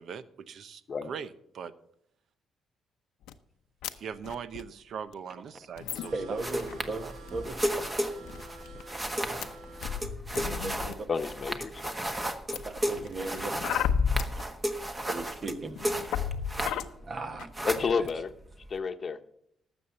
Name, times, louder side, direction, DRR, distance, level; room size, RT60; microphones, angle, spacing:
voice 1, 0.0-1.7 4.0-6.4 7.0-7.1 14.8-15.0, right 7 dB, 65° right, 14 dB, 0.8 m, -41 dB
sound 1, 3.3-3.4 3.8-3.9 4.1-4.6 5.1-5.2 5.8-6.9 7.3-7.5 7.8-7.9 8.2-8.8 9.4-9.5 9.8-10.9 11.4-11.9 12.5-14.4 15.2-15.3 15.6-16.9 17.4-17.5 17.7-18.1, left 7 dB, 85° left, 0.7 m, -33 dB
sound 2, 5.9-10.1, right 2 dB, 85° right, 2.4 m, -49 dB
voice 2, 6.1-7.6 8.3-8.7 9.3-9.4 10.4-11.1 12.6-13.6 15.0-15.8 17.0-17.5 17.8-18.1, right 3 dB, 40° right, 8 dB, 1.4 m, -37 dB
sound 3, 6.4-17.1 17.3-18.8, equal, 20° right, 1.3 m, -34 dB
voice 3, 11.1-11.9 17.6-18.3 18.7-19.2, left 5 dB, 40° left, 8 dB, 1.0 m, -30 dB
12.5 x 7.3 x 7.0 m, 0.72 s
cardioid pair, 90°, 0 cm